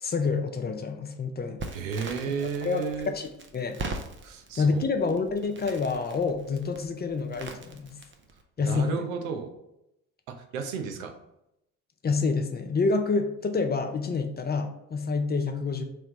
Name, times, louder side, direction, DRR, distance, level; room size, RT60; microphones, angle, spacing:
voice 1, 0.0-1.6 2.4-3.3 3.5-3.8 4.6-7.9 8.6-9.0 12.0-15.8, left 4 dB, 25° left, 6 dB, 0.5 m, -28 dB
Crackle, 1.6-8.4, right 3 dB, 30° right, 0.6 m, -41 dB
voice 2, 1.7-3.1 4.2-4.8 8.6-9.5 10.3-11.1, right 6 dB, 80° right, 5 dB, 0.6 m, -33 dB
3.2 x 3.0 x 4.1 m, 0.83 s
hypercardioid pair, 50°, 41 cm